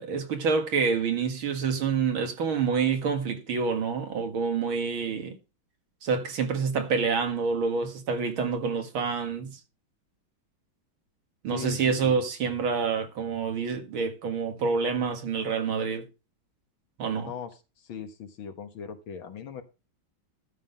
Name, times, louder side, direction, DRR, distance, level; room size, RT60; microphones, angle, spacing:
voice 1, 0.0-5.4 6.0-9.6 11.4-16.1 17.0-17.3, right 5 dB, 80° right, 2.6 m, -27 dB
voice 2, 11.5-12.2 17.2-19.6, left 7 dB, 75° left, 2.2 m, -39 dB
12.5 x 5.7 x 5.5 m
omnidirectional pair, 2.2 m